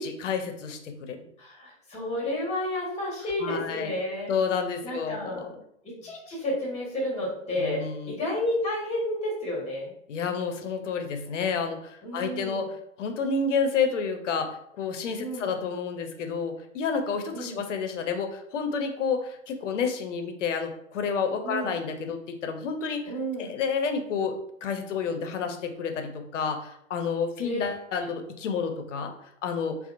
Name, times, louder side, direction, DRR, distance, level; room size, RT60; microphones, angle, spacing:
voice 1, 0.0-1.3 3.4-3.9 4.3-5.5 7.5-8.1 10.1-12.7 13.0-23.1 23.4-29.1 29.4-29.8, left 5 dB, 80° left, 6 dB, 0.6 m, -30 dB
voice 2, 1.4-4.3 4.8-5.5 5.8-9.9 12.0-12.7 15.2-15.5 17.3-17.6 21.4-21.7 23.1-23.5 27.4-27.6 28.0-28.1, left 1 dB, 20° left, -3 dB, 1.2 m, -31 dB
2.8 x 2.0 x 2.4 m, 0.72 s
hypercardioid pair, 110°, 36 cm